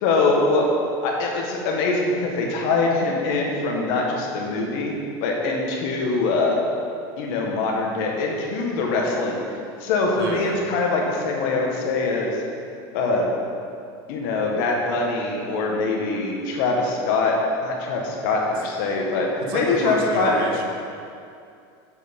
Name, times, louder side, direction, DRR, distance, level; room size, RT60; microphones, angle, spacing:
voice 1, 0.0-0.7 1.0-4.9 5.2-6.6 7.2-9.4 9.8-12.4 12.9-13.2 14.1-20.4, left 3 dB, 60° left, -1 dB, 1.5 m, -23 dB
voice 2, 10.2-10.6 19.4-20.6, right 3 dB, 75° right, 1 dB, 1.2 m, -30 dB
6.9 x 6.1 x 5.2 m, 2.4 s
supercardioid pair, 155°, 12 cm